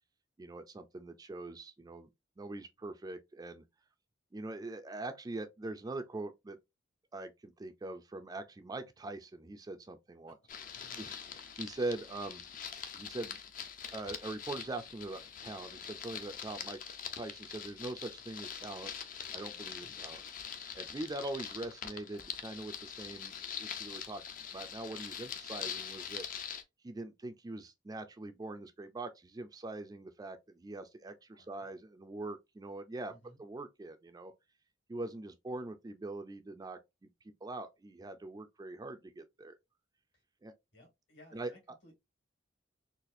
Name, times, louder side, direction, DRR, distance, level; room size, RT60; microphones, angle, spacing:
voice 1, 0.4-2.1 2.4-3.6 4.3-6.6 7.1-10.3 11.0-12.4 12.9-13.4 13.9-18.9 19.3-20.2 20.7-24.2 24.5-26.3 26.8-33.1 33.4-34.3 34.9-37.1 37.4-39.5 40.4-40.5 41.3-41.5, right 2 dB, 20° right, 0.3 m, -42 dB
sound 1, 10.5-26.6, left 8 dB, 45° left, 0.5 m, -44 dB
voice 2, 10.7-11.1 19.8-20.0 31.3-31.7 33.1-33.4 40.1-40.2 40.7-41.9, left 1 dB, 65° left, 2.1 m, -60 dB
4.1 x 2.4 x 2.5 m
head